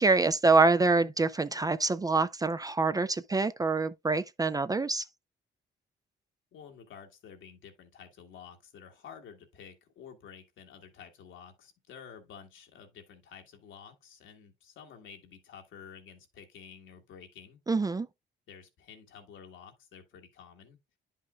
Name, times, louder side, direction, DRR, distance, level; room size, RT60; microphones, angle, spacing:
voice 1, 0.0-5.0 17.7-18.1, right 3 dB, 20° right, 0.4 m, -25 dB
voice 2, 6.5-17.6 18.5-20.8, left 7 dB, 75° left, 1.6 m, -51 dB
10.5 x 5.5 x 2.3 m
cardioid pair, 90°, 20 cm